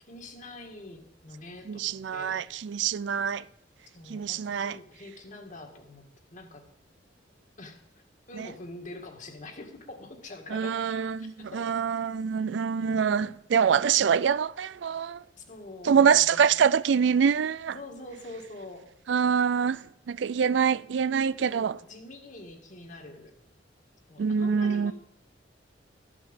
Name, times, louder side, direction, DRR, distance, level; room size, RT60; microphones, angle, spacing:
voice 1, 0.1-2.5 3.9-6.1 6.3-6.6 7.6-7.8 8.3-11.7 12.8-13.1 14.9-15.0 15.4-16.6 17.7-18.9 21.5-23.3 24.1-24.9, left 2 dB, 40° left, 2.0 m, -45 dB
voice 2, 1.7-3.4 4.1-4.8 8.3-8.5 10.5-15.2 15.8-17.8 19.1-19.8 20.1-21.8 24.2-24.9, right 7 dB, 70° right, 0.4 m, -25 dB
13.5 x 6.0 x 8.8 m
head